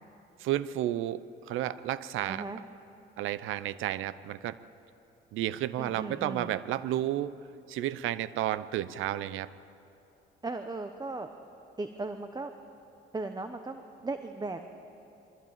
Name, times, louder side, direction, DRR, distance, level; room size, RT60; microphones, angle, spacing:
voice 1, 0.4-2.4 3.2-4.6 5.3-7.4 7.7-9.5, right 13 dB, 90° right, 16 dB, 0.7 m, -32 dB
voice 2, 2.3-2.6 5.8-6.5 10.4-11.3 11.8-12.5 13.1-14.7, right 3 dB, 20° right, 7 dB, 1.0 m, -37 dB
22.0 x 15.0 x 8.9 m, 2.8 s
cardioid pair, 90°, 20 cm